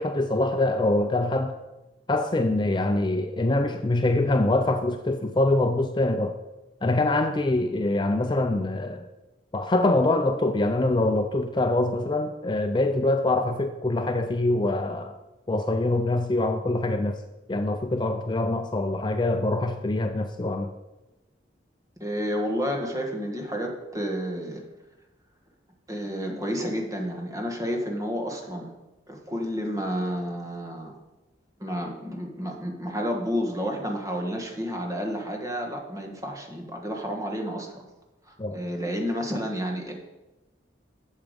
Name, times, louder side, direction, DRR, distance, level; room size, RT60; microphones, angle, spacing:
voice 1, 0.0-1.5 2.1-6.4 6.8-9.1 9.5-15.1 15.5-17.2 17.5-20.7 38.4-38.6, left 2 dB, 25° left, 7 dB, 0.4 m, -24 dB
voice 2, 22.0-24.6 25.9-28.7 29.1-30.9 31.6-37.8 38.5-39.9, equal, 20° right, 1 dB, 1.5 m, -30 dB
11.0 x 7.2 x 5.1 m, 1.1 s
head